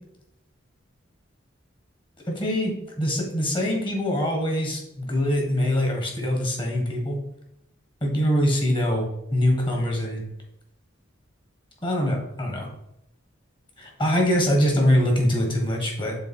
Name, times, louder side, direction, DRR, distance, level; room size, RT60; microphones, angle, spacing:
voice 1, 2.3-7.2 8.0-10.2 11.8-12.7 13.8-16.2, equal, 25° left, 0 dB, 1.6 m, -23 dB
7.1 x 3.4 x 4.5 m, 0.80 s
head